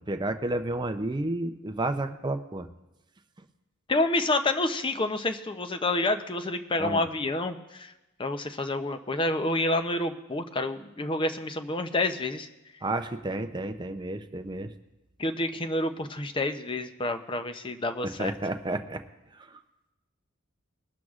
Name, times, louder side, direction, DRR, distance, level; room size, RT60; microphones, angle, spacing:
voice 1, 0.0-2.7 6.8-7.1 12.8-14.7 18.2-19.0, right 2 dB, 20° right, 8 dB, 0.5 m, -31 dB
voice 2, 3.9-7.9 8.2-12.5 15.2-18.3, left 2 dB, 25° left, 8 dB, 0.6 m, -28 dB
21.0 x 12.5 x 2.5 m, 0.99 s
head